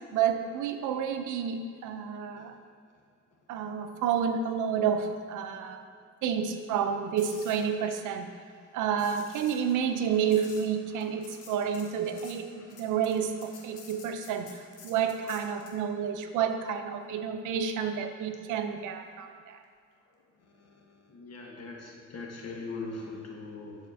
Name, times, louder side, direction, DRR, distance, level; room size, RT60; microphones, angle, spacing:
voice 1, 0.1-2.6 3.5-5.8 6.2-8.3 8.7-19.6, right 7 dB, 85° right, 7 dB, 0.6 m, -30 dB
sound 1, 7.2-15.8 20.0-20.2, left 5 dB, 80° left, 1.1 m, -52 dB
voice 2, 21.1-23.8, left 3 dB, 55° left, -1 dB, 1.3 m, -40 dB
11.5 x 4.2 x 2.7 m, 2.1 s
cardioid pair, 90°, 30 cm